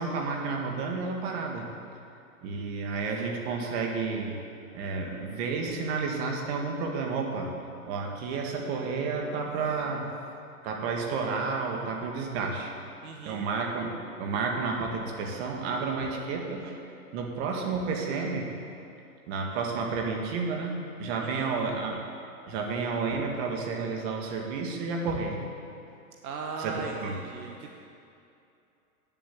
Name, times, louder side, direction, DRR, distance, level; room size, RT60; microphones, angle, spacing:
voice 1, 0.0-1.7 2.4-4.4 4.7-7.5 7.9-10.1 10.6-12.7 13.2-13.9 14.2-16.7 17.1-18.5 19.3-22.0 22.5-25.4 26.6-27.2, right 4 dB, 45° right, 1 dB, 1.8 m, -31 dB
voice 2, 13.0-13.4 21.2-21.5 26.2-27.8, right 4 dB, 70° right, 2 dB, 1.2 m, -38 dB
9.5 x 7.4 x 7.2 m, 2.6 s
hypercardioid pair, 130°, 45 cm